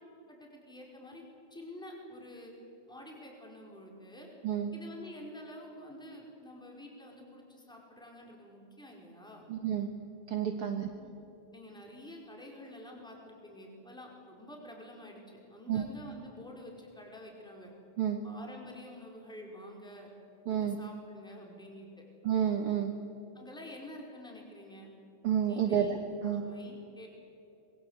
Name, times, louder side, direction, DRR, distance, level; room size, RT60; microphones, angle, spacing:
voice 1, 0.3-1.2 1.5-2.5 2.9-4.3 4.7-9.4 10.6-11.2 11.5-17.7 18.2-20.1 20.5-22.0 23.3-24.9 25.5-26.0 26.2-27.1, left 1 dB, ahead, 0 dB, 4.6 m, -49 dB
voice 2, 9.5-9.9 10.3-10.9 15.7-15.9 18.0-18.2 20.5-20.8 22.2-22.9 25.2-26.4, right 9 dB, 55° right, 4 dB, 1.9 m, -30 dB
26.0 x 22.5 x 8.3 m, 2.8 s
omnidirectional pair, 3.6 m